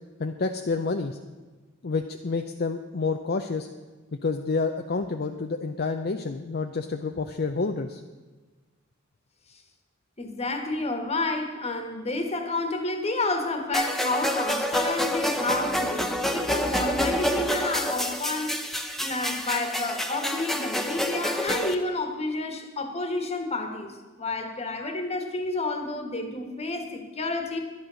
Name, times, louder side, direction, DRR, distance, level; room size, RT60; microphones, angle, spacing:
voice 1, 0.2-1.2 1.8-3.7 4.2-8.0, left 4 dB, 50° left, 6 dB, 0.6 m, -29 dB
voice 2, 10.2-18.6 19.0-23.9 24.2-27.6, left 2 dB, 30° left, 6 dB, 1.6 m, -30 dB
sound 1, 13.7-21.7, equal, ahead, 0.8 m, -28 dB
11.5 x 10.5 x 6.3 m, 1.3 s
head